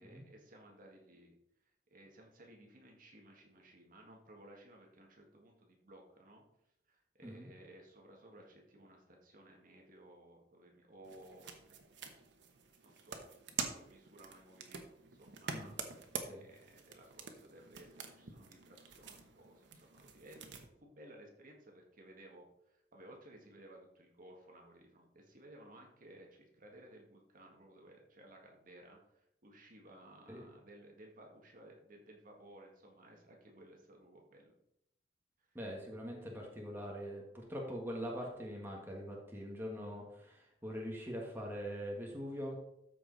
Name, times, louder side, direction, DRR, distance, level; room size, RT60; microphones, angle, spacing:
voice 1, 0.0-1.3 1.9-6.4 6.9-11.8 12.8-29.0 29.4-34.5, right 1 dB, 50° right, 0 dB, 1.8 m, -58 dB
sound 1, 11.0-20.6, right 5 dB, 80° right, 1.1 m, -47 dB
voice 2, 35.5-42.6, equal, 10° right, -2 dB, 1.6 m, -43 dB
13.5 x 4.9 x 4.0 m, 0.79 s
head